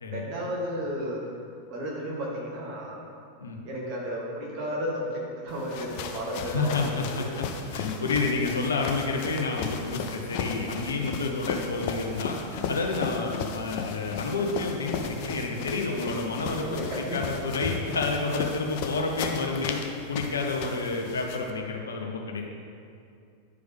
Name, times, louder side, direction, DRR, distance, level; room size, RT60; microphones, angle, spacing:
voice 1, 0.1-1.3 1.7-3.0 3.6-7.3 12.5-12.6 16.6-17.4, equal, 45° right, -3 dB, 1.9 m, -33 dB
sound 1, 5.5-21.5, left 6 dB, 45° left, 0.6 m, -36 dB
voice 2, 6.5-7.5 7.7-19.8 20.1-22.4, left 3 dB, 70° left, 1 dB, 0.8 m, -29 dB
9.5 x 4.9 x 3.6 m, 2.4 s
figure-of-eight pair, 90°, 0 cm